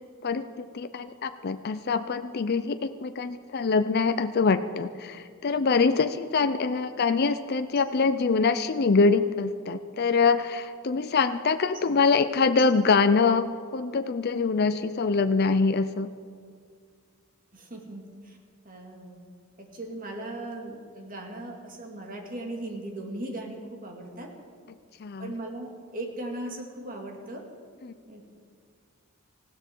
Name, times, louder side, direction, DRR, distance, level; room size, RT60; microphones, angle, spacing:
voice 1, 0.2-16.1 25.0-25.4 27.8-27.9, left 4 dB, 50° left, 10 dB, 0.5 m, -24 dB
voice 2, 17.5-18.0 18.7-19.1 19.6-24.3 25.2-27.4 28.1-28.3, right 1 dB, 40° right, 2 dB, 2.4 m, -38 dB
19.5 x 15.5 x 4.6 m, 2.1 s
head